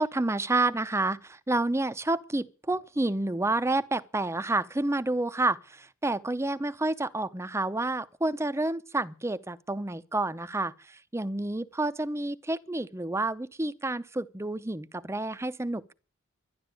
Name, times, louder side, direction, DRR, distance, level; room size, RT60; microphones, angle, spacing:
voice 1, 0.0-15.9, right 2 dB, 15° right, 0.6 m, -29 dB
12.0 x 11.0 x 8.4 m
head